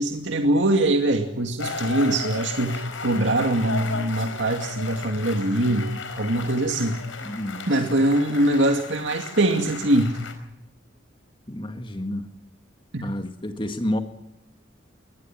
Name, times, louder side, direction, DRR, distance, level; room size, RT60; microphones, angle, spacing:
voice 1, 0.0-7.0 7.7-10.2 12.9-13.0, right 1 dB, 70° right, 4 dB, 2.4 m, -23 dB
sound 1, 1.6-10.3, left 4 dB, 85° left, 4.7 m, -35 dB
voice 2, 7.2-7.7 11.5-12.3 13.0-14.0, left 1 dB, 25° left, 7 dB, 1.9 m, -29 dB
23.5 x 19.5 x 7.5 m, 0.83 s
head